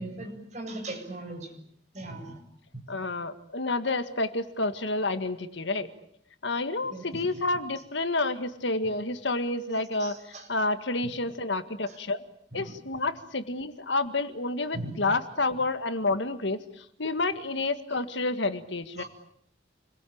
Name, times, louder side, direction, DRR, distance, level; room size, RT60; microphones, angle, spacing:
voice 1, 0.0-1.6 1.9-2.3 6.9-7.0 10.0-10.5 11.9-12.0 14.7-14.9 19.0-19.1, right 2 dB, 40° right, 3 dB, 7.8 m, -38 dB
voice 2, 2.9-5.9 6.4-12.2 12.5-19.0, left 2 dB, 70° left, 10 dB, 1.8 m, -29 dB
29.5 x 22.5 x 8.7 m, 0.68 s
head